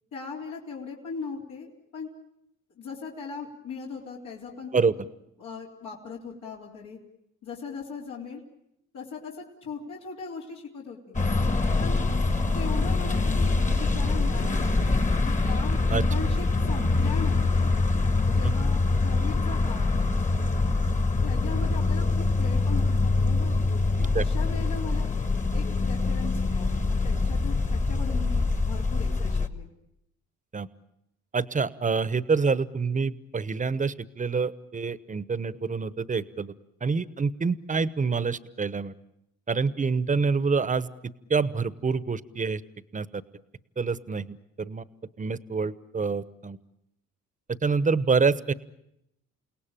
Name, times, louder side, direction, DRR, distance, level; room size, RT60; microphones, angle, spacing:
voice 1, 0.1-2.1 2.8-4.9 5.4-7.0 7.4-8.4 8.9-11.2 11.8-12.1 12.5-17.7 18.3-20.1 21.2-23.5 24.0-25.1 25.5-29.7, left 5 dB, 75° left, -3 dB, 3.6 m, -39 dB
sound 1, 11.1-29.5, left 3 dB, 25° left, 1.5 m, -24 dB
voice 2, 31.3-36.5 36.8-38.9 39.5-42.6 42.9-43.1 43.8-44.8 45.2-46.6 47.6-48.5, right 5 dB, 25° right, 16 dB, 1.0 m, -27 dB
29.0 x 18.0 x 9.0 m, 0.81 s
cardioid pair, 90°, 30 cm